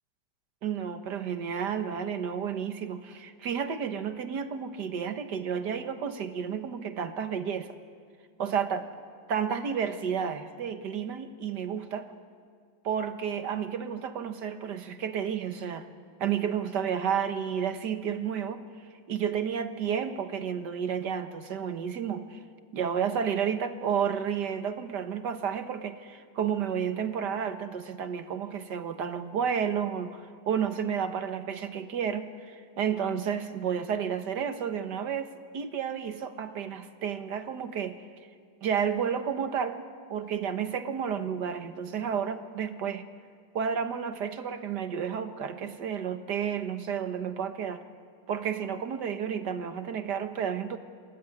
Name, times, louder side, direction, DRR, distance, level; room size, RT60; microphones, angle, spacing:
voice 1, 0.6-7.7 8.4-8.9 9.3-12.1 12.8-15.9 16.2-18.6 19.1-22.4 22.7-38.0 38.6-39.8 40.1-43.1 43.5-47.8 48.3-50.8, right 7 dB, 75° right, 9 dB, 1.9 m, -31 dB
26.5 x 20.0 x 9.9 m, 2.1 s
omnidirectional pair, 1.8 m